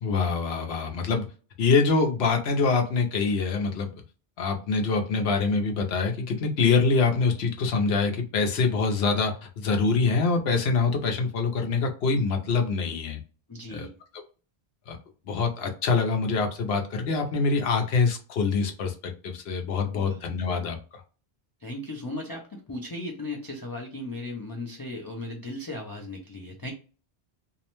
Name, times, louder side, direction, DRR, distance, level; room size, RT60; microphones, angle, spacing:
voice 1, 0.0-1.3 1.6-3.9 4.4-13.2 13.7-13.9 14.9-15.0 15.3-18.9 19.2-21.0, left 4 dB, 75° left, 4 dB, 0.9 m, -25 dB
voice 2, 13.5-14.0 19.9-20.2 21.6-26.7, left 2 dB, 40° left, 0 dB, 0.3 m, -36 dB
2.7 x 2.0 x 2.9 m, 0.36 s
omnidirectional pair, 1.1 m